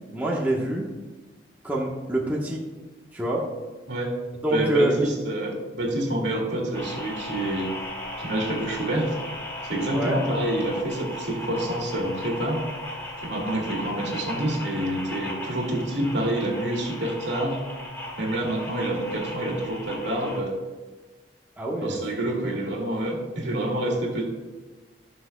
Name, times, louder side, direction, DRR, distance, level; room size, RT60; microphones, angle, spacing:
voice 1, 0.1-0.9 1.6-2.6 3.1-3.4 4.4-5.1 9.9-10.2 21.6-21.9, right 1 dB, 10° right, -4 dB, 1.1 m, -25 dB
voice 2, 4.5-7.7 8.2-9.2 9.6-12.6 13.2-17.6 18.2-20.6 21.8-24.3, right 1 dB, 65° right, 0 dB, 2.1 m, -27 dB
sound 1, 6.7-20.4, left 1 dB, 15° left, 1.6 m, -36 dB
17.0 x 6.2 x 2.2 m, 1.3 s
head